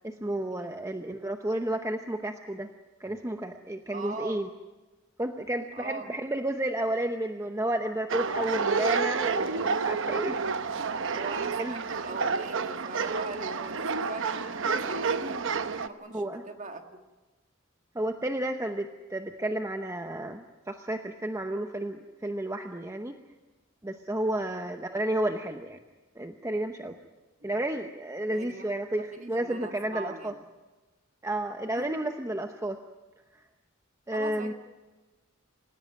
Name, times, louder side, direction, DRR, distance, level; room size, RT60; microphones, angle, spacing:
voice 1, 0.0-2.7 3.0-4.5 5.2-10.4 11.6-11.8 16.1-16.5 17.9-23.1 23.8-25.8 26.2-26.9 27.4-30.3 31.2-32.8 34.1-34.5, right 1 dB, 15° right, 6 dB, 0.8 m, -32 dB
voice 2, 3.9-4.4 5.7-6.1 8.1-8.5 10.4-10.5 11.1-17.0 24.3-24.6 28.3-28.6 29.1-30.4 31.8-31.9 34.1-34.5, right 3 dB, 35° right, 5 dB, 2.0 m, -41 dB
sound 1, 8.1-15.9, right 5 dB, 60° right, 0.9 m, -29 dB
27.0 x 16.0 x 9.2 m, 1.2 s
head